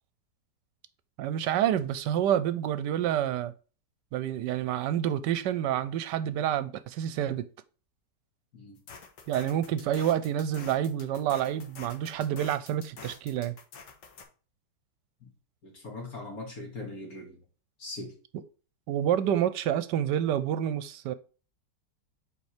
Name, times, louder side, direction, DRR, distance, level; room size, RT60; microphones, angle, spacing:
voice 1, 1.2-3.5 4.1-7.5 9.3-13.6 18.9-21.1, right 10 dB, 80° right, 1.2 m, -28 dB
sound 1, 8.8-14.2, left 5 dB, 80° left, 1.9 m, -47 dB
voice 2, 15.6-17.4 17.8-18.1, left 2 dB, 55° left, 2.5 m, -40 dB
5.3 x 4.6 x 4.9 m
omnidirectional pair, 1.9 m